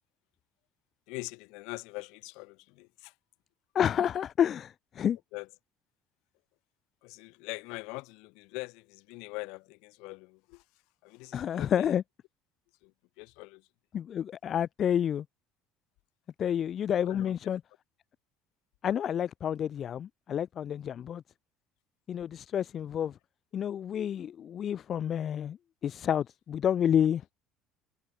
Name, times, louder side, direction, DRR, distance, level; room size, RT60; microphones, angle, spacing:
voice 1, 1.1-3.1 5.3-5.5 7.0-10.6 11.0-11.9 12.8-13.7 17.1-17.4, left 27 dB, 70° left, 4.1 m, -43 dB
voice 2, 3.7-5.2 11.3-12.0 13.9-15.2 16.4-17.6 18.8-21.2 22.1-23.1 23.5-25.6 25.8-27.2, left 9 dB, 45° left, 0.9 m, -29 dB
hypercardioid pair, 65°, 0 cm